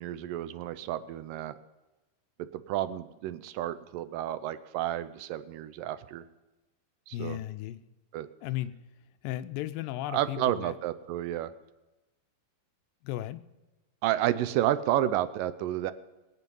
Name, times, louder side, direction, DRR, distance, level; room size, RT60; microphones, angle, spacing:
voice 1, 0.0-1.6 2.5-6.2 7.1-7.4 8.1-8.3 10.1-11.5 14.0-15.9, right 13 dB, 80° right, 13 dB, 2.2 m, -31 dB
voice 2, 7.1-7.8 8.4-8.7 9.2-10.8 13.0-13.4, left 14 dB, 85° left, 12 dB, 2.4 m, -35 dB
22.5 x 8.5 x 5.4 m, 1.1 s
omnidirectional pair, 4.0 m